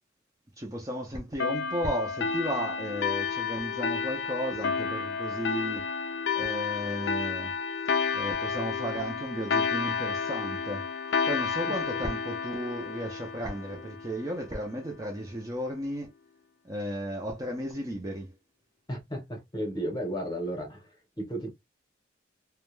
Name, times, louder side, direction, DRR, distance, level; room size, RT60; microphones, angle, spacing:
voice 1, 0.6-5.9 6.3-7.5 8.1-10.9 11.3-16.1 16.6-18.3, equal, 15° right, 0.4 m, -34 dB
sound 1, 1.4-14.5, left 5 dB, 60° left, 0.4 m, -31 dB
voice 2, 18.9-21.5, right 1 dB, 20° left, 0.8 m, -34 dB
2.3 x 2.1 x 3.0 m
head